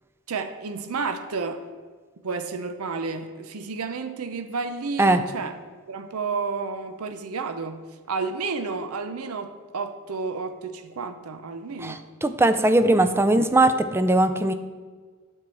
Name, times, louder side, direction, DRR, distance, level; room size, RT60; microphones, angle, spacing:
voice 1, 0.3-1.6 2.2-5.6 5.9-7.8 8.1-12.0, right 4 dB, 80° right, 8 dB, 0.6 m, -31 dB
voice 2, 11.8-14.5, right 2 dB, 10° right, 10 dB, 0.4 m, -20 dB
8.8 x 4.7 x 7.6 m, 1.5 s
head